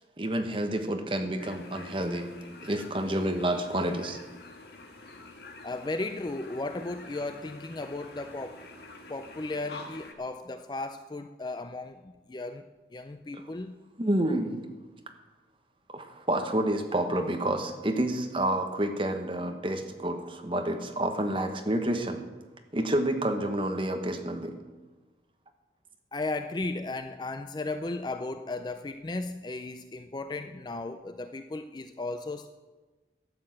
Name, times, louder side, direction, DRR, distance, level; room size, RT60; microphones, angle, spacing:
voice 1, 0.2-2.3 2.6-4.2 13.3-13.4 14.0-14.6 15.9-22.2 22.7-24.5, right 1 dB, 30° right, 5 dB, 1.2 m, -29 dB
sound 1, 1.4-10.1, left 2 dB, 65° left, 1.6 m, -47 dB
voice 2, 5.6-8.6 9.1-13.7 26.1-32.5, left 2 dB, 25° left, 9 dB, 0.4 m, -35 dB
12.5 x 8.1 x 7.7 m, 1.2 s
head